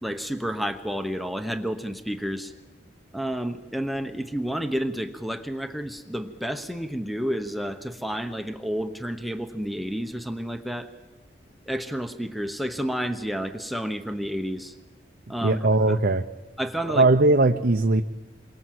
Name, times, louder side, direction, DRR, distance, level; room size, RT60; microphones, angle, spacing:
voice 1, 0.0-2.5 3.1-10.9 11.7-14.8 15.3-15.6 15.9-16.0 16.6-17.0, equal, ahead, 6 dB, 1.0 m, -30 dB
voice 2, 15.4-16.2 16.9-18.0, right 2 dB, 55° right, 5 dB, 0.8 m, -19 dB
28.5 x 23.5 x 7.7 m, 1.1 s
head